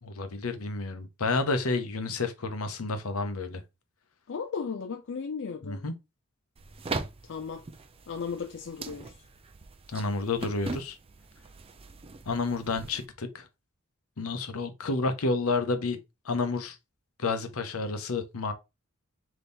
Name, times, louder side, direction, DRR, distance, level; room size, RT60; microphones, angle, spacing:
voice 1, 0.0-3.6 5.6-5.9 9.9-11.0 12.3-13.5 14.2-16.0 16.2-16.8 17.2-18.5, left 3 dB, 75° left, 0.8 m, -30 dB
voice 2, 4.3-5.9 7.2-7.7 8.1-9.1, left 5 dB, 60° left, 0.4 m, -35 dB
sound 1, 6.6-13.1, right 3 dB, 25° right, 0.5 m, -40 dB
3.6 x 2.9 x 3.9 m
head